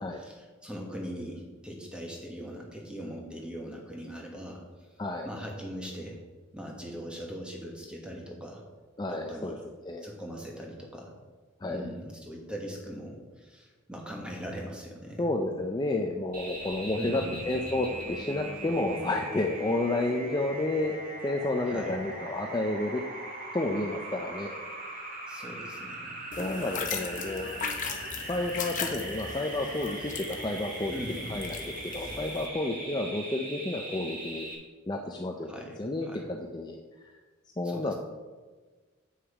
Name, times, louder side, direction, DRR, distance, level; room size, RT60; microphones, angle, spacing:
voice 1, 0.0-4.6 5.2-6.2 6.5-8.6 9.1-9.5 10.0-11.1 11.6-15.3 17.0-17.4 21.7-22.1 25.3-26.4 30.9-31.4 35.5-36.3 37.6-37.9, equal, 5° right, -1 dB, 1.3 m, -40 dB
voice 2, 9.0-9.6 9.8-10.1 11.6-11.8 15.2-21.0 21.2-23.0 23.5-24.6 26.4-27.6 28.2-34.5 34.9-35.5 35.8-37.1 37.6-37.9, left 2 dB, 20° left, 2 dB, 0.5 m, -31 dB
sound 1, 16.3-34.5, right 1 dB, 45° right, 1.9 m, -40 dB
sound 2, 26.3-32.5, left 5 dB, 40° left, 0.9 m, -38 dB
8.1 x 6.1 x 4.8 m, 1.3 s
head